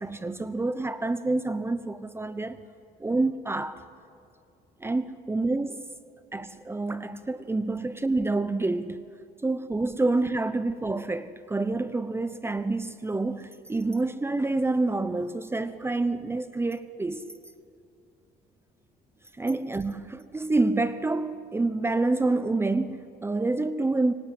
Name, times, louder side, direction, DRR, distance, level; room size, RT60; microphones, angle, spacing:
voice 1, 0.0-2.6 3.0-3.8 4.8-5.8 6.3-9.1 9.4-17.3 19.4-24.1, right 2 dB, 15° right, 0.9 m, -27 dB
26.0 x 24.0 x 8.9 m
cardioid pair, 110°, 17 cm